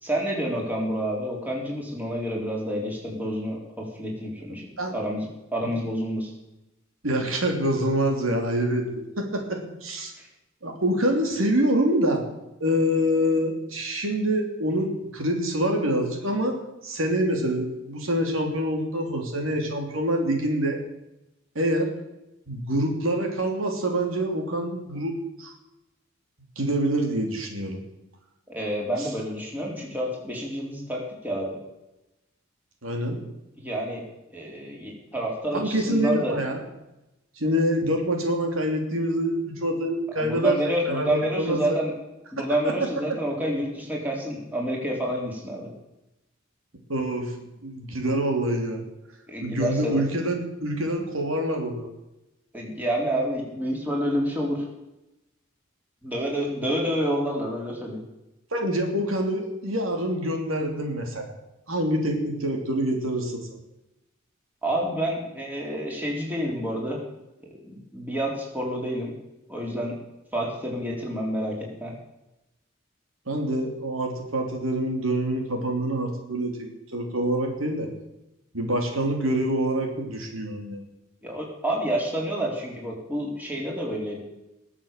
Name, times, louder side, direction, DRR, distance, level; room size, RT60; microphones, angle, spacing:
voice 1, 0.0-6.3 10.2-10.3 28.5-31.6 33.6-34.0 34.3-36.4 40.1-41.9 42.3-45.7 49.3-50.0 52.5-54.7 56.0-58.0 64.6-67.0 67.4-69.1 69.5-70.0 70.3-71.9 81.2-84.2, right 1 dB, 10° right, -2 dB, 3.7 m, -29 dB
voice 2, 7.0-8.8 9.2-10.1 10.6-12.2 12.6-16.6 16.8-20.8 21.5-21.9 22.5-25.5 26.6-27.8 32.8-33.2 35.5-36.6 37.4-40.5 40.8-41.8 46.9-47.3 47.6-48.8 49.4-51.9 58.5-61.3 61.7-63.4 73.3-77.9 78.5-80.8, right 1 dB, 85° right, 3 dB, 3.1 m, -26 dB
20.5 x 7.4 x 6.8 m, 0.94 s
head